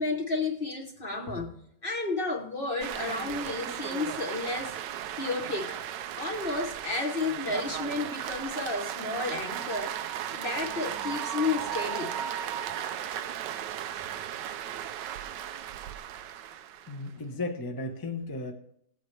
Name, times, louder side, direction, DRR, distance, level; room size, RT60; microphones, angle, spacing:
voice 1, 0.0-1.6 1.8-4.8 5.2-5.8 6.2-10.0 10.3-12.2, left 3 dB, 40° left, 2 dB, 1.0 m, -32 dB
sound 1, 2.8-17.1, right 10 dB, 90° right, 1.3 m, -36 dB
voice 2, 16.9-18.5, left 2 dB, 15° left, 3 dB, 0.8 m, -35 dB
17.0 x 8.3 x 3.2 m, 0.70 s
omnidirectional pair, 1.8 m